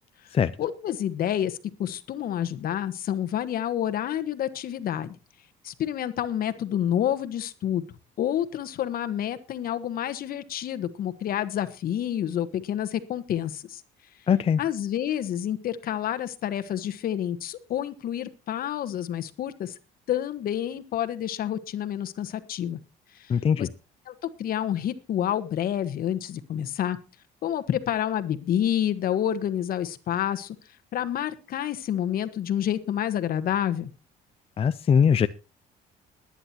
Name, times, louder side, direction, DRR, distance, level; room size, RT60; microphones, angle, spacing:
voice 1, 0.6-5.1 5.6-7.8 8.2-13.8 14.6-19.7 20.1-22.8 23.1-23.7 24.1-27.0 27.4-30.5 30.9-33.9, left 10 dB, 60° left, 10 dB, 1.3 m, -28 dB
voice 2, 14.3-14.6 23.3-23.7 34.6-35.3, left 7 dB, 35° left, 11 dB, 0.6 m, -21 dB
21.0 x 10.0 x 2.9 m, 0.31 s
cardioid pair, 110°, 17 cm